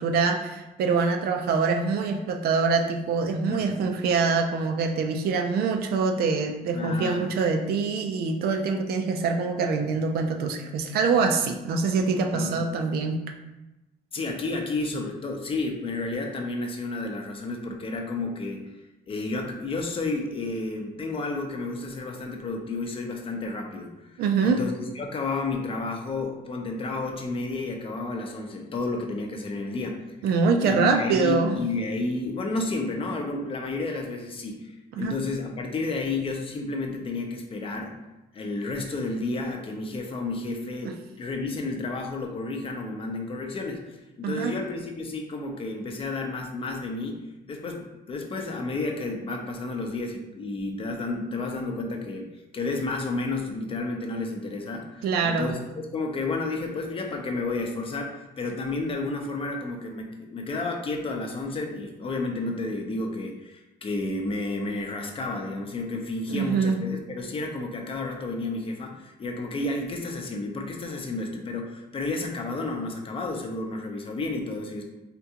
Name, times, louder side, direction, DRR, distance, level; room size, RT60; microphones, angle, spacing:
voice 1, 0.0-13.2 24.2-24.6 30.2-31.6 34.9-35.1 40.8-40.9 44.2-44.6 55.0-55.5 66.3-66.8, right 4 dB, 65° right, 4 dB, 0.4 m, -24 dB
voice 2, 3.5-4.0 6.7-7.3 12.3-12.6 14.1-18.6 19.1-30.2 30.6-38.0 38.3-43.8 44.2-74.8, left 3 dB, 35° left, 2 dB, 0.5 m, -31 dB
3.7 x 2.3 x 2.8 m, 0.99 s
cardioid pair, 110°, 17 cm